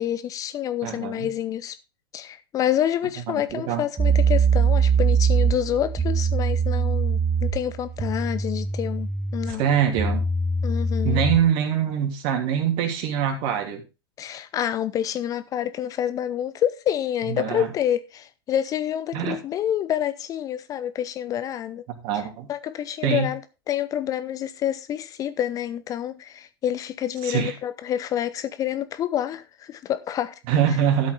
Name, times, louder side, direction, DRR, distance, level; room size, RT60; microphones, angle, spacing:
voice 1, 0.0-1.8 2.1-9.6 10.6-11.2 14.2-21.8 22.5-23.4 23.7-30.3, left 10 dB, 25° left, 0.7 m, -28 dB
voice 2, 0.8-1.3 3.3-3.8 9.5-10.2 11.0-13.8 17.3-17.7 19.1-19.4 22.0-22.5 23.0-23.3 27.2-27.5 30.5-31.1, right 8 dB, 40° right, 3.1 m, -24 dB
sound 1, 4.0-11.5, right 5 dB, 15° right, 1.8 m, -23 dB
12.5 x 7.9 x 3.8 m
figure-of-eight pair, 100°, 13 cm